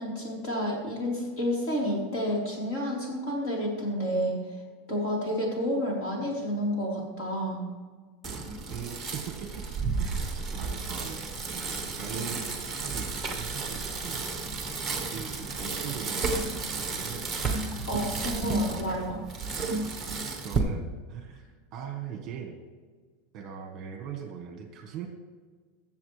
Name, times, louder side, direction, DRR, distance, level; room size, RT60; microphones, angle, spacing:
voice 1, 0.0-4.4 4.9-7.6 12.1-12.4 17.9-19.2, equal, 45° left, -3 dB, 4.0 m, -30 dB
Bicycle, 8.2-20.6, right 4 dB, 5° right, 1.2 m, -32 dB
voice 2, 8.7-9.5 10.0-12.5 12.8-16.4 16.8-17.4 19.7-19.9 20.4-22.6 23.3-25.1, right 8 dB, 30° right, 4 dB, 1.3 m, -41 dB
22.0 x 7.4 x 3.3 m, 1.5 s
supercardioid pair, 175°, 0 cm